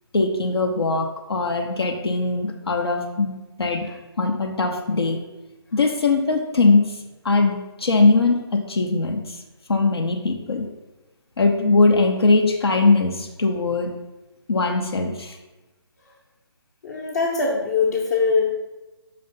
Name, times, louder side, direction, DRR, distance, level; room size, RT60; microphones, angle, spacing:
voice 1, 0.1-3.3 3.6-3.9 4.2-5.2 5.7-7.0 7.2-9.4 9.7-10.7 11.4-13.9 14.5-15.4, left 3 dB, 65° left, 2 dB, 0.8 m, -20 dB
voice 2, 16.8-18.4, left 4 dB, 35° left, -4 dB, 0.9 m, -22 dB
5.3 x 3.4 x 5.4 m, 1.1 s
figure-of-eight pair, 150°, 14 cm